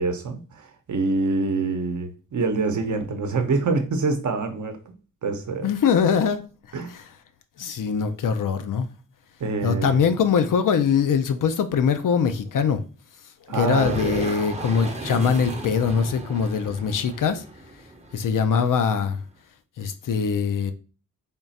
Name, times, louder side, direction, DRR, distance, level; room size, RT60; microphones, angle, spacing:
voice 1, 0.0-4.9 5.2-5.7 6.7-6.9 9.4-10.1 13.5-14.0, right 3 dB, 60° right, 0.8 m, -26 dB
voice 2, 5.6-6.4 6.9-7.0 7.6-8.9 9.6-12.8 13.5-17.4 18.1-19.2 19.8-20.7, left 6 dB, 65° left, 0.6 m, -22 dB
sound 1, 13.5-19.2, right 1 dB, 20° right, 0.7 m, -35 dB
3.6 x 2.4 x 4.1 m
wide cardioid pair, 105°, 34 cm